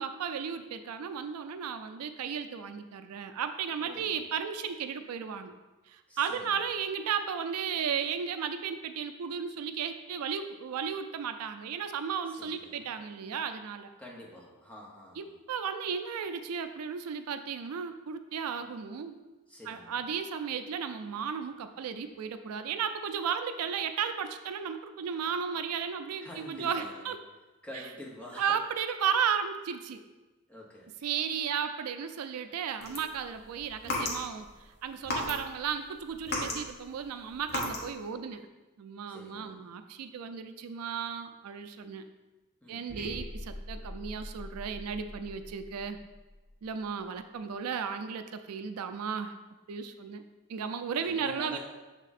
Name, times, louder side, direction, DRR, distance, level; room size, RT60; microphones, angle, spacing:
voice 1, 0.0-5.5 5.9-13.9 15.2-19.2 19.7-27.2 28.4-30.0 31.0-34.5 34.8-38.5 38.8-42.0 42.7-46.0 46.6-49.3 49.7-50.2 50.5-51.6, right 7 dB, 85° right, 9 dB, 0.4 m, -34 dB
voice 2, 3.8-4.1 6.1-6.6 12.3-12.9 14.0-15.4 19.5-20.0 26.2-27.1 27.6-28.6 30.5-30.9 39.1-39.6 42.6-42.9 51.0-51.6, left 1 dB, 5° left, -4 dB, 1.0 m, -47 dB
sound 1, 32.8-34.5 35.0-35.7 36.0-38.0, left 1 dB, 50° left, 1.0 m, -34 dB
sound 2, 42.9-47.0, equal, 40° right, 0.7 m, -44 dB
6.5 x 3.6 x 4.1 m, 1.2 s
head